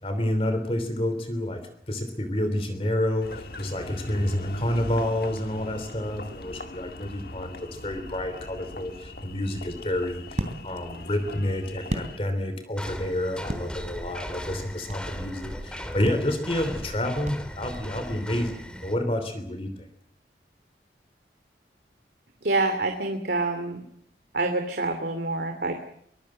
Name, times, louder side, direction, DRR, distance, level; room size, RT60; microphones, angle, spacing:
voice 1, 0.0-18.5 18.8-19.9, left 1 dB, 30° left, 9 dB, 3.1 m, -29 dB
Engine, 3.2-12.2, left 1 dB, 55° left, 1.8 m, -39 dB
sound 1, 9.2-12.7 13.0-15.2 15.5-15.7 16.0-17.9, equal, 40° right, 3.3 m, -36 dB
sound 2, 12.7-19.0, equal, 5° left, 2.4 m, -38 dB
voice 2, 22.4-23.8 24.3-25.8, right 2 dB, 65° right, 5 dB, 2.8 m, -26 dB
24.0 x 21.0 x 7.7 m, 0.66 s
head